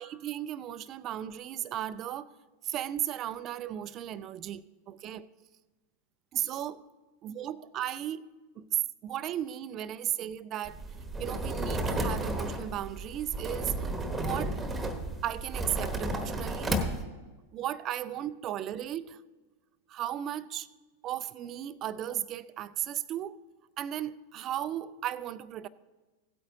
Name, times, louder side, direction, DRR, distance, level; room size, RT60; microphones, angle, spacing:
voice 1, 0.0-2.3 2.6-5.3 6.3-6.8 7.2-10.8 11.2-13.9 14.2-14.6 15.2-16.8 17.5-19.2 19.9-20.7 21.0-23.4 23.8-25.7, right 11 dB, 35° right, 0.4 m, -35 dB
sound 1, 10.6-17.0, right 1 dB, 10° right, 1.1 m, -33 dB
16.5 x 8.7 x 2.7 m
figure-of-eight pair, 90°, 0 cm